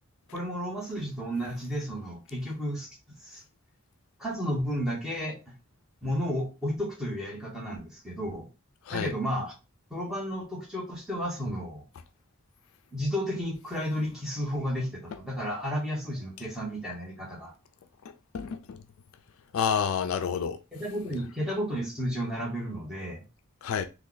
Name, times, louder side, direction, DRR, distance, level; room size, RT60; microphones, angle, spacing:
voice 1, 0.3-2.9 3.2-3.4 4.2-5.4 6.0-8.5 8.9-9.5 9.9-11.8 12.9-17.5 20.7-23.2, equal, ahead, 1.1 m, -32 dB
voice 2, 18.3-18.8 19.5-20.6 23.6-23.9, left 7 dB, 70° left, 0.3 m, -29 dB
3.2 x 2.3 x 3.9 m
head